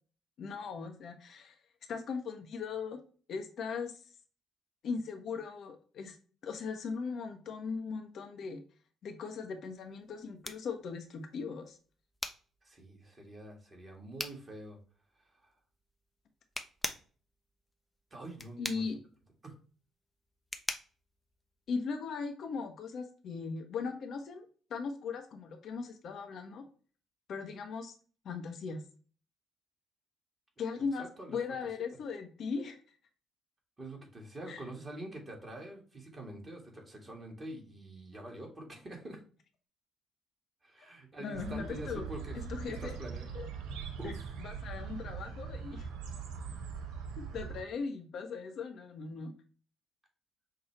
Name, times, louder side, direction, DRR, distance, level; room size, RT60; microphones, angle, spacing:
voice 1, 0.4-1.5 1.9-3.0 3.3-3.9 4.8-6.2 6.4-8.6 9.0-11.8 18.6-19.0 21.7-26.6 27.3-27.9 28.2-28.8 30.6-32.8 34.4-34.6 41.2-42.1 42.5-42.9 43.3-43.5 44.0-44.1 44.4-45.9 47.2-49.3, left 5 dB, 55° left, 5 dB, 0.7 m, -38 dB
sound 1, 9.7-22.2, left 2 dB, 15° left, 0.6 m, -44 dB
voice 2, 12.6-14.8 15.4-15.5 18.1-18.9 19.4-19.5 31.0-31.9 33.8-39.2 40.6-42.4 42.7-43.3 44.0-44.2, right 1 dB, 30° right, 0 dB, 1.7 m, -46 dB
sound 2, 41.3-47.6, right 6 dB, 65° right, 0.5 m, -41 dB
5.8 x 2.3 x 2.9 m, 0.40 s
figure-of-eight pair, 45°, 0 cm